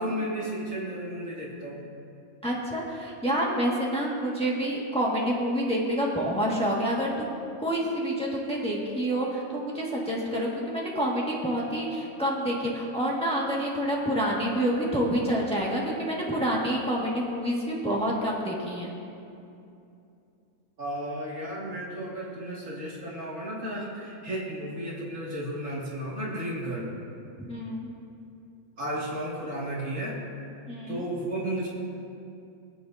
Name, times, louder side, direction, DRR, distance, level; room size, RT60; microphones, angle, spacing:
voice 1, 0.0-1.8 20.8-26.9 28.8-30.2 30.9-31.7, right 1 dB, 65° right, -6 dB, 2.7 m, -33 dB
voice 2, 2.4-18.9 27.5-27.9 30.7-31.0, equal, 5° left, -5 dB, 1.8 m, -28 dB
24.0 x 8.5 x 2.7 m, 2.6 s
omnidirectional pair, 1.5 m